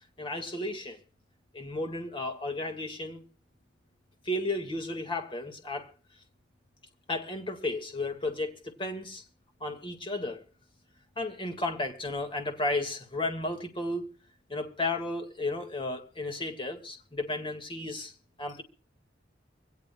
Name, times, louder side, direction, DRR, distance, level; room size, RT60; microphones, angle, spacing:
voice 1, 0.2-1.0 1.5-3.2 4.3-5.9 7.1-9.2 9.6-10.4 11.2-14.1 14.5-18.1 18.4-18.6, left 2 dB, 25° left, 1.9 m, -33 dB
24.0 x 17.5 x 2.3 m
head